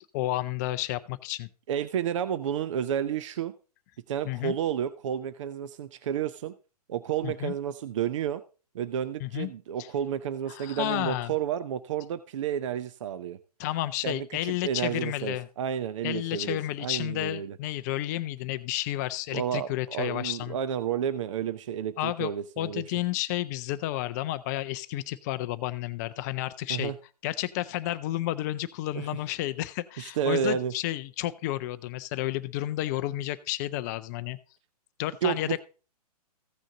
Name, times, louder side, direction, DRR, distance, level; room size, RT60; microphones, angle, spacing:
voice 1, 0.1-1.5 4.2-4.5 7.2-7.5 9.2-9.5 9.8-9.9 10.5-11.3 13.6-15.5 16.0-20.6 22.0-26.9 27.2-34.4 35.0-35.6, left 15 dB, 25° left, 13 dB, 0.4 m, -31 dB
voice 2, 1.7-3.5 4.1-6.5 6.9-8.4 8.7-13.4 14.0-17.6 19.3-22.8 26.7-26.9 28.9-29.1 30.0-30.7 35.2-35.6, right 9 dB, 50° right, 13 dB, 0.6 m, -31 dB
15.0 x 6.3 x 3.9 m, 0.35 s
figure-of-eight pair, 120°, 20 cm